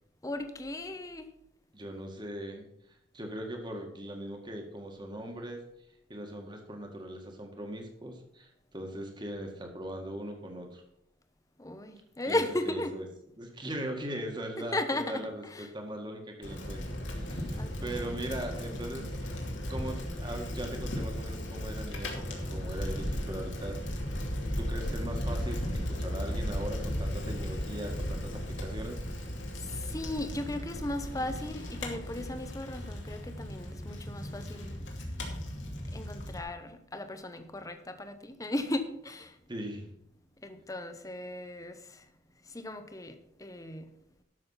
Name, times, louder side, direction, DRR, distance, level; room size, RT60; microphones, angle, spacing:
voice 1, 0.2-1.3 11.6-12.9 14.6-15.7 17.5-18.0 29.6-34.9 35.9-39.4 40.4-42.0 42.5-43.9, left 1 dB, 20° left, 8 dB, 0.9 m, -36 dB
voice 2, 1.7-2.7 3.1-5.6 6.1-10.8 12.3-13.1 13.4-16.9 17.2-19.4 19.7-23.8 24.6-29.3 39.5-39.9, right 1 dB, 25° right, 3 dB, 1.9 m, -40 dB
Bicycle, 16.4-36.4, equal, 80° left, 2.6 m, -36 dB
12.5 x 6.4 x 5.7 m, 0.77 s
head